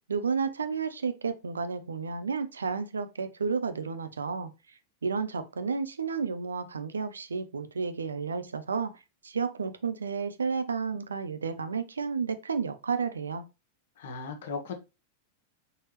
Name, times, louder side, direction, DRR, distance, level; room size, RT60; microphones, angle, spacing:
voice 1, 0.1-4.5 5.0-8.9 9.2-13.4, right 5 dB, 80° right, 0.5 m, -31 dB
voice 2, 14.0-14.7, left 4 dB, 60° left, 1.1 m, -36 dB
4.6 x 3.0 x 3.0 m
figure-of-eight pair, 95°, 0 cm